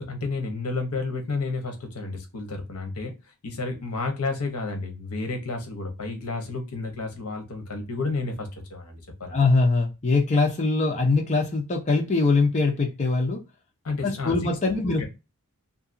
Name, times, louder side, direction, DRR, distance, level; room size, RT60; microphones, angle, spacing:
voice 1, 0.0-9.4 13.8-14.4 14.8-15.1, left 3 dB, 75° left, 4 dB, 0.8 m, -31 dB
voice 2, 9.3-13.4 14.0-15.1, left 3 dB, 30° left, 0 dB, 0.5 m, -22 dB
2.8 x 2.5 x 2.5 m, 0.26 s
head